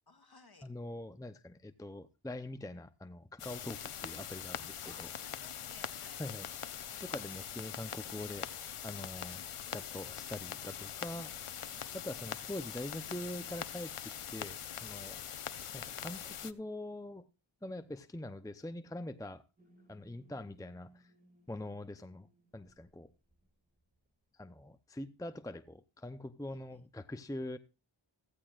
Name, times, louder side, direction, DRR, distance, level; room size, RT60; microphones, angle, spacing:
voice 1, 0.1-0.7 3.5-3.7 4.8-6.3 26.5-26.9, left 3 dB, 45° left, 2.2 m, -60 dB
voice 2, 0.6-5.1 6.2-8.5 8.8-11.3 11.9-15.2 15.7-17.2 17.6-19.4 19.9-21.1 21.5-22.3 22.5-23.1 24.3-27.6, left 1 dB, 5° left, 0.7 m, -44 dB
sound 1, 3.4-16.5, left 9 dB, 85° left, 0.8 m, -43 dB
sound 2, 19.6-24.3, right 1 dB, 15° right, 2.5 m, -66 dB
15.5 x 15.0 x 2.5 m
wide cardioid pair, 50°, 50 cm